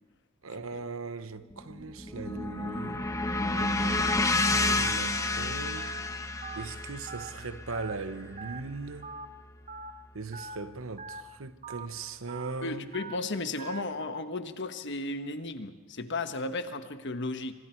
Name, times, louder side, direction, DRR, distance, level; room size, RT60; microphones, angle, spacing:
voice 1, 0.4-3.1 3.5-6.0 6.6-9.1 10.1-12.9, right 3 dB, 75° right, 1.1 m, -39 dB
sound 1, 1.5-9.8, left 2 dB, 15° left, 1.1 m, -31 dB
Telephone, 3.8-4.0 4.5-4.7 5.1-5.3 5.8-6.0 6.4-6.7 7.1-7.3 7.7-8.0 8.4-8.6 9.0-9.3 9.7-9.9 10.3-10.6 11.0-11.2 11.6-11.9 12.3-12.5 12.9-13.2 13.6-13.8, right 5 dB, 40° right, 1.0 m, -42 dB
voice 2, 12.6-17.5, left 2 dB, 60° left, 1.4 m, -34 dB
26.0 x 25.5 x 4.6 m
head